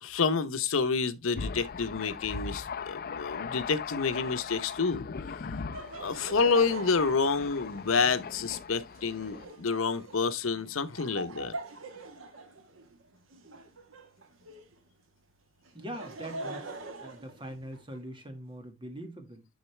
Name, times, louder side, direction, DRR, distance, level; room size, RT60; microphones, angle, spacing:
voice 1, 0.0-5.6 6.0-11.6, left 5 dB, 85° left, 0.8 m, -29 dB
Thunder, 1.3-9.5, left 5 dB, 50° left, 0.5 m, -39 dB
Laughter, 5.7-14.8 15.6-18.0, right 3 dB, 80° right, 1.3 m, -44 dB
voice 2, 15.7-16.7 17.0-19.5, right 1 dB, 25° right, 1.6 m, -42 dB
10.5 x 4.0 x 3.2 m
head